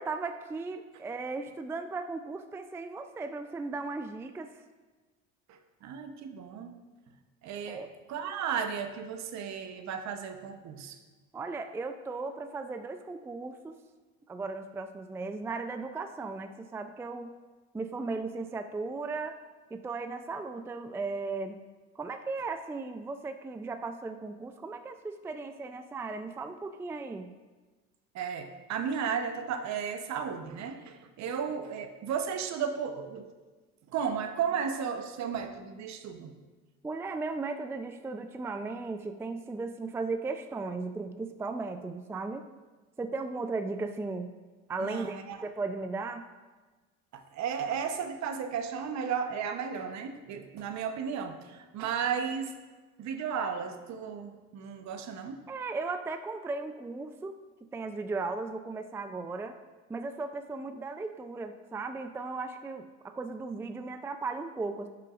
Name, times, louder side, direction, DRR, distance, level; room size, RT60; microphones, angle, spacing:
voice 1, 0.0-4.5 7.7-7.9 11.3-13.7 14.3-17.4 17.7-19.4 19.7-21.6 22.0-27.3 36.8-42.4 43.0-44.3 44.7-46.3 55.5-59.5 59.9-64.9, right 3 dB, 10° right, 8 dB, 0.3 m, -36 dB
voice 2, 5.5-6.7 7.4-7.8 8.1-11.0 28.1-33.3 33.9-36.3 44.8-45.4 47.1-52.5 53.0-55.4, right 7 dB, 60° right, 6 dB, 0.9 m, -34 dB
11.0 x 5.8 x 2.4 m, 1.3 s
supercardioid pair, 80°, 31 cm